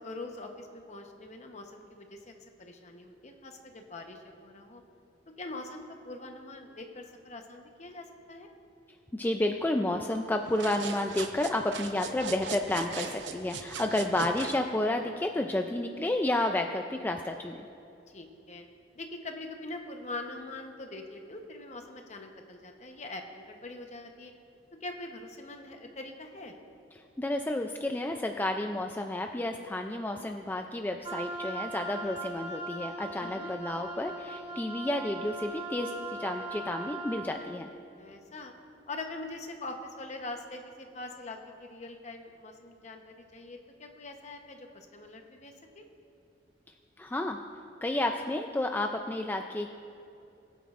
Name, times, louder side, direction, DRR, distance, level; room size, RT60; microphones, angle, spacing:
voice 1, 0.0-4.8 5.4-8.5 13.8-14.1 18.1-18.7 18.9-24.3 24.8-26.6 33.2-33.5 38.0-38.5 38.9-45.8, left 2 dB, 40° left, 4 dB, 0.9 m, -43 dB
voice 2, 9.1-17.6 27.0-37.7 47.0-47.4 47.8-49.7, left 1 dB, 10° left, 4 dB, 0.3 m, -31 dB
sound 1, 10.4-14.6, right 5 dB, 80° right, 0.7 m, -39 dB
Wind instrument woodwind instrument, 31.0-37.3, right 2 dB, 30° right, 1.3 m, -39 dB
20.0 x 9.2 x 2.5 m, 2.7 s
head